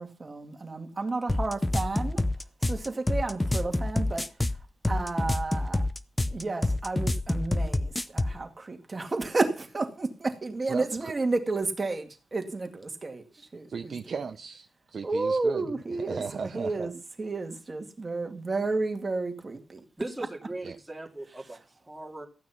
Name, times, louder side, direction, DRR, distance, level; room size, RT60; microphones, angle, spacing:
voice 1, 0.0-2.2 2.6-4.3 4.9-5.9 6.3-14.0 15.0-19.8, right 3 dB, 20° right, 5 dB, 2.1 m, -31 dB
sound 1, 1.3-8.4, left 2 dB, 10° left, 0.7 m, -27 dB
voice 2, 10.7-11.1 13.7-16.9 20.6-20.8, right 5 dB, 40° right, 7 dB, 0.7 m, -36 dB
voice 3, 20.0-22.3, right 2 dB, 5° right, 1 dB, 2.6 m, -39 dB
15.0 x 9.5 x 5.8 m, 0.34 s
wide cardioid pair, 165°, 0 cm